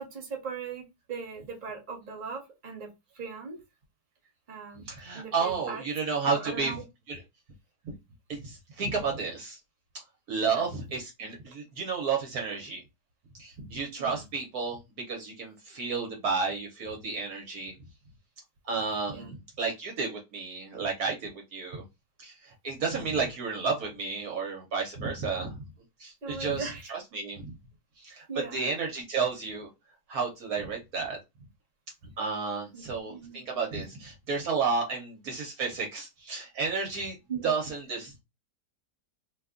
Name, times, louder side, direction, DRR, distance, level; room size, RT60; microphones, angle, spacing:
voice 1, 0.0-2.9 3.1-3.6 4.5-4.8 5.1-5.8 6.2-6.8 10.4-10.7 14.0-14.2 19.1-19.3 22.9-23.1 26.2-26.9 28.3-28.6 32.7-33.4 37.3-37.5, right 5 dB, 35° right, 1 dB, 1.1 m, -39 dB
voice 2, 4.9-6.8 7.1-7.2 7.8-7.9 8.3-9.6 9.9-10.0 10.3-12.8 13.3-17.7 18.6-21.8 22.2-25.6 26.0-27.5 28.0-28.2 28.5-29.7 30.1-31.2 32.0-37.2 37.4-38.2, right 5 dB, 65° right, 1 dB, 1.2 m, -32 dB
2.8 x 2.2 x 3.6 m, 0.23 s
omnidirectional pair, 1.8 m